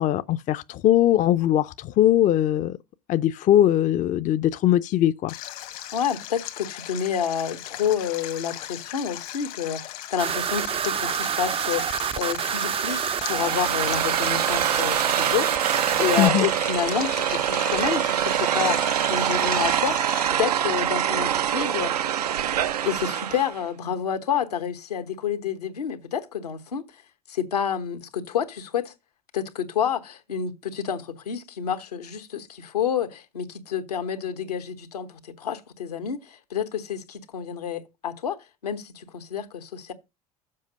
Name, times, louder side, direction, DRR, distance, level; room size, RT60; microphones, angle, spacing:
voice 1, 0.0-2.8 3.1-5.3 16.2-16.4, left 12 dB, 40° left, 0.5 m, -20 dB
Stream, 5.3-20.3, left 14 dB, 70° left, 1.3 m, -38 dB
voice 2, 5.9-22.1 22.8-26.8 27.3-28.9 29.3-35.1 35.4-38.4 38.6-39.9, left 8 dB, 85° left, 1.2 m, -29 dB
sound 1, 10.2-16.3, right 9 dB, 30° right, 0.4 m, -27 dB
sound 2, 13.3-23.6, right 10 dB, 90° right, 0.5 m, -25 dB
7.5 x 5.0 x 6.5 m
hypercardioid pair, 75°, 20 cm